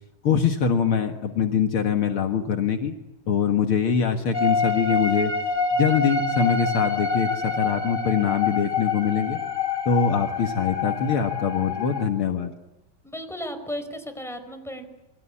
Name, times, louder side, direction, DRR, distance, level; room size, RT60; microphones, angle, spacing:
voice 1, 0.2-3.0 3.3-5.3 5.7-9.4 9.8-12.5, left 6 dB, 80° left, 5 dB, 1.2 m, -23 dB
sound 1, 4.3-12.0, left 4 dB, 20° left, 2.7 m, -26 dB
voice 2, 13.0-14.8, equal, ahead, 6 dB, 4.1 m, -34 dB
28.5 x 23.5 x 8.6 m, 0.93 s
omnidirectional pair, 5.0 m